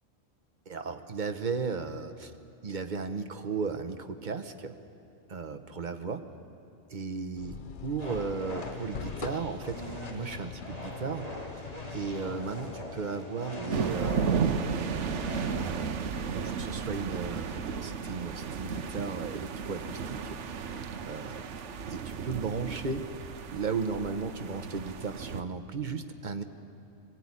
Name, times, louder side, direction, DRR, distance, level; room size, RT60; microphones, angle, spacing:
voice 1, 0.7-2.3 2.6-4.8 5.3-6.2 6.9-7.6 7.8-11.3 11.9-14.4 15.6-21.4 21.9-23.1 23.5-26.4, right 4 dB, 40° right, 8 dB, 1.1 m, -35 dB
sound 1, 7.3-13.1, left 8 dB, 55° left, 0.6 m, -43 dB
sound 2, 8.0-15.7, equal, 25° left, 3.2 m, -42 dB
sound 3, 13.7-25.4, right 6 dB, 60° right, 1.2 m, -34 dB
21.0 x 17.0 x 9.8 m, 2.7 s
omnidirectional pair, 1.4 m